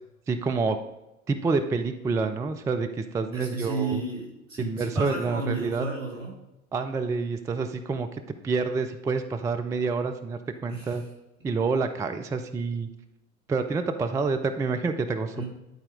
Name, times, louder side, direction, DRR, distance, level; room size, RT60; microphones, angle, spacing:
voice 1, 0.3-0.8 1.3-4.0 4.6-5.8 6.7-11.0 11.4-12.9 13.5-15.4, right 4 dB, 10° right, 8 dB, 0.4 m, -28 dB
voice 2, 3.3-6.3 10.7-10.9 15.3-15.4, right 3 dB, 75° right, -3 dB, 3.1 m, -32 dB
10.5 x 4.3 x 5.1 m, 0.95 s
figure-of-eight pair, 70°, 39 cm